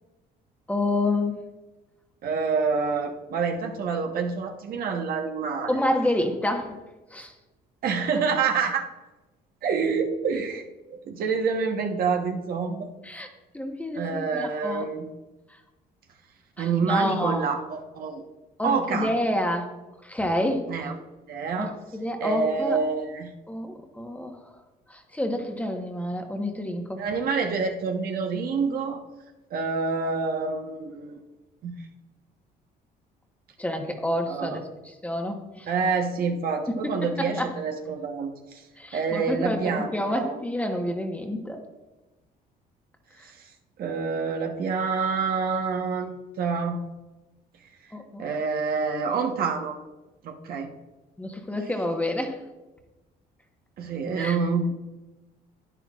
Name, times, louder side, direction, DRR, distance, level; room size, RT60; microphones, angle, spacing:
voice 1, 0.7-1.4 5.7-6.8 7.1-7.3 13.0-13.3 13.5-14.8 16.6-17.4 18.6-19.7 20.0-20.7 21.6-22.8 23.5-24.4 24.9-27.0 33.6-34.6 35.0-35.7 36.7-37.5 38.8-41.6 43.2-43.3 47.9-48.2 51.2-52.4 54.2-54.4, left 1 dB, 10° left, 4 dB, 1.1 m, -28 dB
voice 2, 2.2-5.8 7.8-8.9 9.6-12.9 13.9-15.1 16.6-18.2 18.6-19.1 20.7-21.0 21.3-21.7 22.2-23.3 27.0-29.0 29.5-31.2 31.6-31.7 34.3-34.6 35.7-38.6 38.9-40.4 43.2-43.5 43.8-46.8 48.2-49.8 50.2-50.7 53.8-54.7, right 5 dB, 60° right, 4 dB, 1.1 m, -27 dB
10.5 x 9.7 x 2.4 m, 1.1 s
cardioid pair, 110°, 17 cm